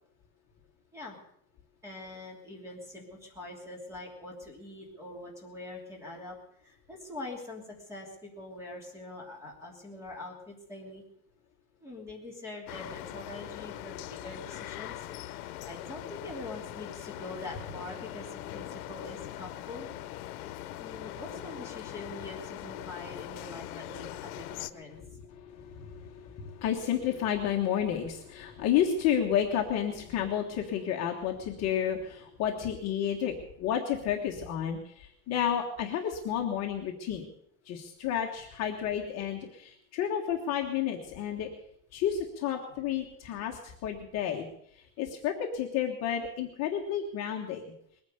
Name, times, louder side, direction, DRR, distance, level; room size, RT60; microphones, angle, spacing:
voice 1, 1.8-11.0 11.8-19.9 20.8-25.0, left 2 dB, 5° right, -1 dB, 3.1 m, -44 dB
sound 1, 12.7-24.7, left 14 dB, 85° left, 0.9 m, -41 dB
voice 2, 24.9-37.3 37.6-41.5 41.9-44.5 44.7-47.6, left 9 dB, 35° left, 0 dB, 1.4 m, -31 dB
21.0 x 9.5 x 6.7 m, 0.71 s
cardioid pair, 175°, 43 cm